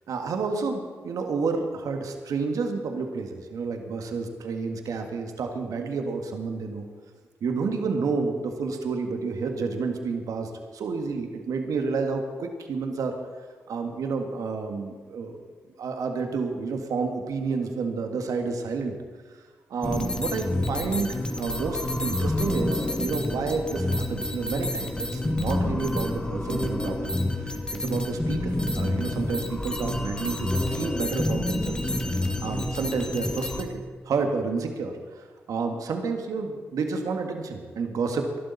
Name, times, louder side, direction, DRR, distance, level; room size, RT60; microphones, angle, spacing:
voice 1, 0.1-6.9 7.4-13.2 13.7-15.4 15.8-18.9 19.7-38.3, right 4 dB, 70° right, 4 dB, 1.8 m, -30 dB
sound 1, 19.8-33.6, left 1 dB, 15° left, 1.9 m, -28 dB
21.5 x 11.5 x 4.2 m, 1.5 s
hypercardioid pair, 40°, 6 cm